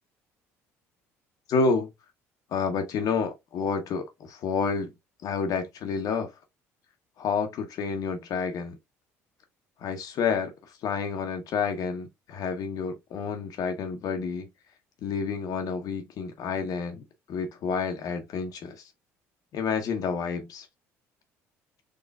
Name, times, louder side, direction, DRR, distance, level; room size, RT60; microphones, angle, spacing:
voice 1, 1.5-1.9 2.5-4.9 5.2-6.3 7.2-8.8 9.8-10.5 10.8-14.5 15.0-18.8 19.5-20.7, left 5 dB, 55° left, 0.8 m, -29 dB
3.9 x 3.1 x 2.2 m
hypercardioid pair, 60°, 7 cm